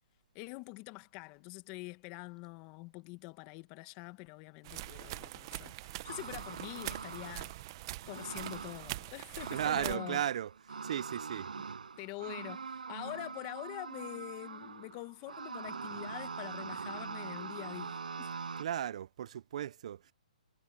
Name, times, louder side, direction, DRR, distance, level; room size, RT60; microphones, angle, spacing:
voice 1, 0.3-7.5 8.1-10.2 12.0-18.3, left 25 dB, 30° left, 1.5 m, -45 dB
sound 1, 4.6-10.0, right 18 dB, 35° right, 0.9 m, -43 dB
sound 2, 6.1-18.6, right 5 dB, 85° right, 7.5 m, -43 dB
voice 2, 9.5-10.5 10.8-11.5 18.6-20.1, right 10 dB, 55° right, 0.6 m, -35 dB
hypercardioid pair, 150°, 4 cm